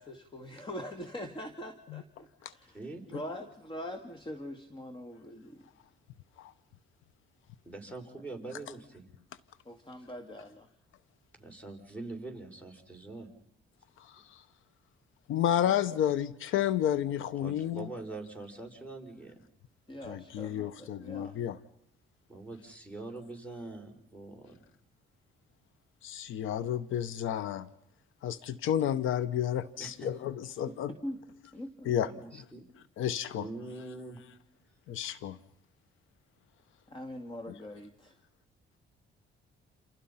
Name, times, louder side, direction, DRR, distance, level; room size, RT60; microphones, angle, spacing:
voice 1, 0.0-2.8 3.1-5.6 9.7-10.7 15.7-15.8 19.9-21.4 30.7-31.2 31.5-31.9 36.9-38.1, left 1 dB, 25° left, 6 dB, 2.4 m, -43 dB
voice 2, 7.6-9.1 11.4-13.3 17.4-19.4 22.3-24.6 29.8-30.1 32.0-32.6 33.3-34.2, right 2 dB, 5° left, 5 dB, 6.2 m, -43 dB
voice 3, 14.0-14.4 15.3-17.9 20.0-21.6 26.0-27.7 28.2-30.9 31.8-32.1 33.0-33.5 34.9-35.4, left 10 dB, 80° left, 16 dB, 1.0 m, -31 dB
29.0 x 28.0 x 5.7 m, 0.75 s
cardioid pair, 90°, 20 cm